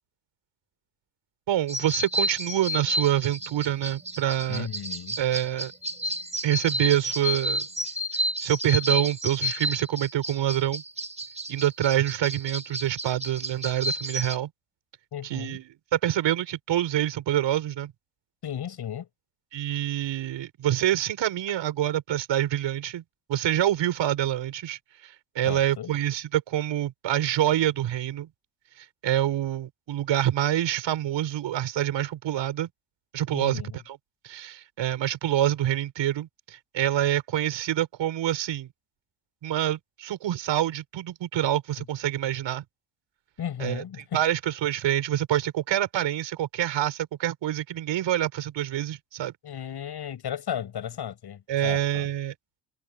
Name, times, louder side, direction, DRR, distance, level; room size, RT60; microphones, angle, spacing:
voice 1, 1.5-4.7 5.2-5.7 6.0-6.1 6.4-7.7 8.4-10.8 11.5-14.5 15.2-17.9 19.5-23.0 23.3-28.3 29.0-32.7 33.1-34.0 34.2-38.7 39.4-42.6 43.6-43.8 44.1-49.3 51.5-52.3, right 12 dB, 60° right, 7.6 m, -26 dB
sound 1, 1.7-14.4, equal, 15° right, 4.7 m, -31 dB
voice 2, 4.5-5.2 15.1-15.6 18.4-19.1 25.5-25.9 33.3-33.8 43.4-44.2 49.4-52.1, left 9 dB, 50° left, 7.9 m, -35 dB
supercardioid pair, 70°, 49 cm